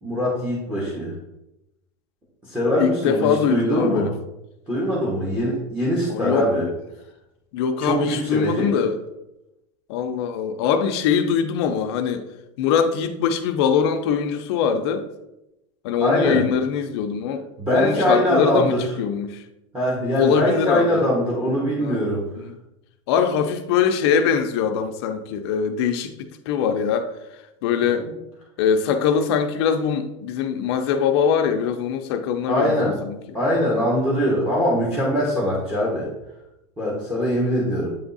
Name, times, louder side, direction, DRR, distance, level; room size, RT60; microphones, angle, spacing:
voice 1, 0.0-1.2 2.4-4.1 4.7-6.7 7.8-8.7 16.0-16.5 17.6-18.8 19.7-22.2 28.0-28.1 32.5-33.0 33.3-36.1 36.8-37.9, equal, 5° right, -5 dB, 1.1 m, -22 dB
voice 2, 2.8-4.1 6.1-6.7 7.5-9.0 9.9-12.2 12.6-15.1 15.8-19.4 20.2-21.1 21.8-22.0 22.3-22.6 23.1-28.1 28.6-33.2 37.4-37.5, left 7 dB, 50° left, 7 dB, 0.5 m, -22 dB
7.8 x 3.5 x 4.0 m, 0.91 s
supercardioid pair, 165°, 17 cm